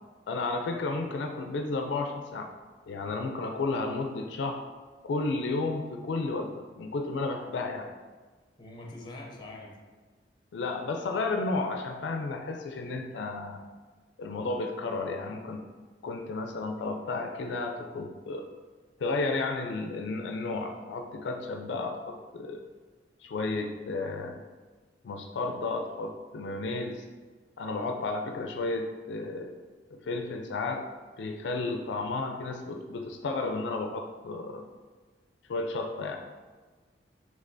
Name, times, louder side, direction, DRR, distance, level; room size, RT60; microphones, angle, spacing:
voice 1, 0.3-2.5 2.9-4.6 5.1-7.9 10.5-13.6 14.2-15.6 16.0-18.5 19.0-22.6 23.2-24.4 25.0-27.0 27.6-29.5 29.9-30.8 31.2-34.6 35.5-36.2, left 3 dB, 80° left, 4 dB, 0.4 m, -32 dB
voice 2, 0.9-1.3 8.6-9.8, left 2 dB, 25° left, 0 dB, 0.6 m, -45 dB
5.3 x 3.3 x 2.6 m, 1.4 s
head